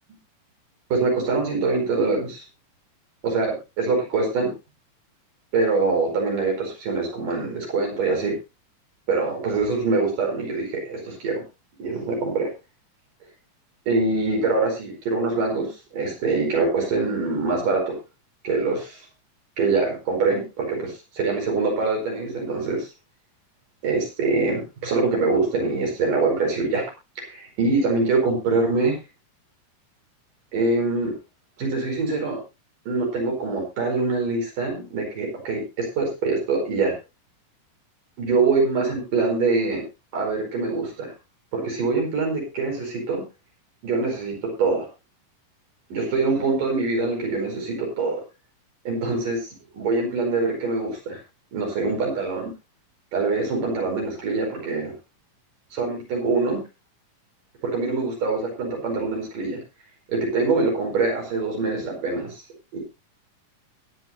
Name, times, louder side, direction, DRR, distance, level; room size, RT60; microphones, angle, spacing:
voice 1, 0.9-2.4 3.2-4.5 5.5-8.4 9.1-11.4 11.8-12.5 13.9-18.0 18.4-19.0 19.6-22.9 23.8-26.8 27.2-29.0 30.5-31.1 31.6-32.4 32.9-37.0 38.2-39.8 40.1-41.1 41.5-43.2 43.8-44.9 45.9-48.2 48.8-49.4 49.7-51.2 51.5-52.5 53.1-54.9 55.7-56.6 57.6-59.6 60.1-62.4 62.7-62.8, right 3 dB, 75° right, 0 dB, 6.5 m, -24 dB
21.5 x 9.4 x 2.8 m, 0.27 s
omnidirectional pair, 3.8 m